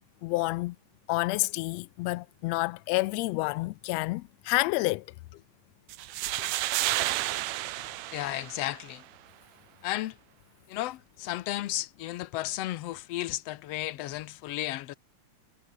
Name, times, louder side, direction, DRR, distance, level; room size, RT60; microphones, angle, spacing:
voice 1, 0.2-0.7 1.1-5.0, left 21 dB, 85° left, 1.5 m, -29 dB
sound 1, 5.9-8.9, right 16 dB, 75° right, 1.9 m, -31 dB
voice 2, 8.1-9.0 9.8-10.2 10.7-14.9, left 15 dB, 70° left, 1.7 m, -34 dB
omnidirectional pair, 3.5 m